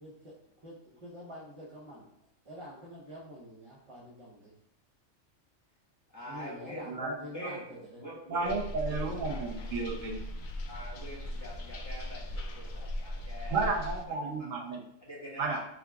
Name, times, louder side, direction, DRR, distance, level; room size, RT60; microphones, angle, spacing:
voice 1, 0.0-0.3 0.6-2.1 2.4-4.5 6.3-8.0, equal, 30° right, -7 dB, 0.7 m, -47 dB
voice 2, 6.1-6.8 7.3-8.6 8.8-9.4 10.7-14.5 15.0-15.6, equal, 15° left, -9 dB, 1.5 m, -44 dB
voice 3, 8.1-10.2 13.5-14.8 15.4-15.6, right 3 dB, 80° right, 0 dB, 1.1 m, -32 dB
sound 1, 8.4-14.0, left 1 dB, 65° left, 0.5 m, -38 dB
4.8 x 3.6 x 2.3 m, 0.76 s
omnidirectional pair, 1.3 m